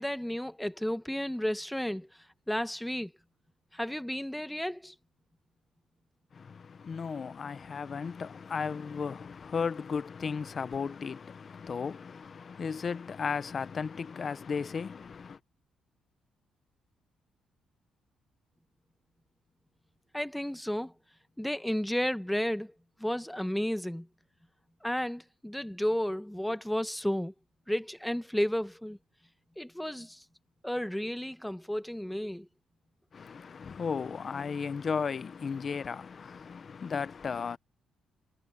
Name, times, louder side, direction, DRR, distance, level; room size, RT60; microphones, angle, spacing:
voice 1, 0.0-2.1 2.5-3.1 3.7-4.9 20.1-20.9 21.4-22.7 23.0-24.1 24.8-27.3 27.7-29.0 29.6-30.2 30.6-32.5, equal, 5° left, 1.1 m, -32 dB
voice 2, 6.3-15.4 33.1-37.6, left 5 dB, 45° left, 0.9 m, -35 dB
cardioid pair, 90°, 0 cm